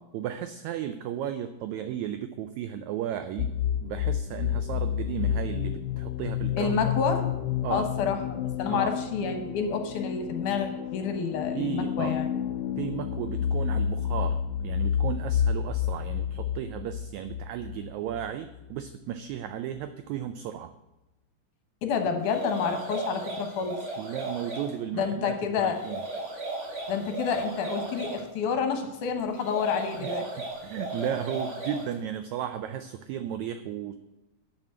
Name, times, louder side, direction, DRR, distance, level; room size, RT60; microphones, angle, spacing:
voice 1, 0.1-3.5 3.8-6.7 7.6-7.9 8.7-8.9 11.5-12.1 12.8-20.7 24.0-26.0 30.0-30.2 30.6-33.9, right 10 dB, 85° right, 10 dB, 1.6 m, -34 dB
sound 1, 3.4-18.9, left 9 dB, 90° left, 2.2 m, -30 dB
voice 2, 6.6-7.3 7.7-12.3 21.8-23.8 24.9-25.8 26.9-30.2, left 6 dB, 70° left, 6 dB, 2.5 m, -29 dB
sound 2, 22.2-24.7 25.7-28.2 29.4-31.9, right 2 dB, 40° right, 2.6 m, -35 dB
8.6 x 6.1 x 7.8 m, 0.99 s
omnidirectional pair, 3.8 m